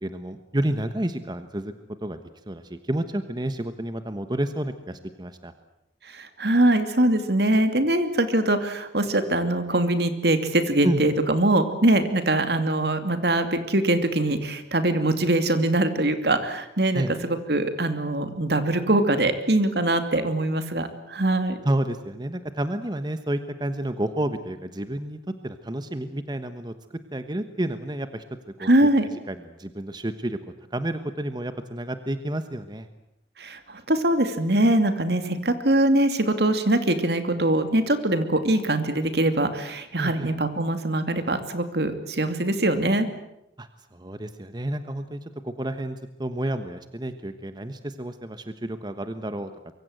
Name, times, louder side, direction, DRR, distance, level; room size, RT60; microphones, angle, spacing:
voice 1, 0.0-1.7 2.0-2.2 2.5-5.5 10.8-11.0 16.9-17.1 21.6-26.7 27.1-28.2 28.6-30.4 30.7-32.9 40.0-40.3 43.6-49.5, right 1 dB, 25° right, 9 dB, 1.2 m, -30 dB
voice 2, 6.1-21.6 28.6-29.0 33.4-43.1, right 1 dB, 65° right, 8 dB, 2.7 m, -22 dB
25.0 x 23.5 x 8.0 m, 0.82 s
head